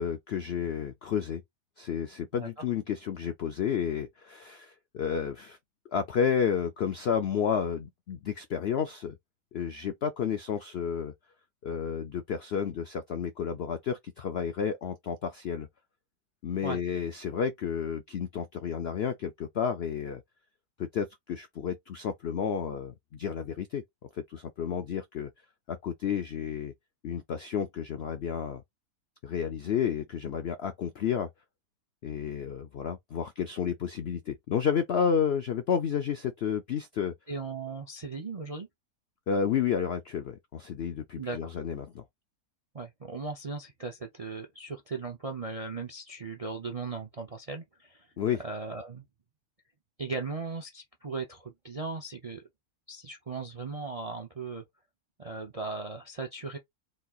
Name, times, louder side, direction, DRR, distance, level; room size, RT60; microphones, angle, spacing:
voice 1, 0.0-1.4 1.8-5.6 5.9-9.2 9.5-11.1 11.6-15.7 16.4-20.2 20.8-23.8 24.1-25.3 25.7-26.7 27.0-28.6 29.2-31.3 32.0-37.1 39.3-42.0 48.2-48.4, left 7 dB, 90° left, 0.5 m, -31 dB
voice 2, 37.3-38.7 41.2-41.5 42.7-48.1 48.4-49.0 50.0-52.4 52.9-54.6 55.2-56.6, right 4 dB, 55° right, 0.4 m, -37 dB
4.3 x 4.2 x 2.4 m
omnidirectional pair, 1.8 m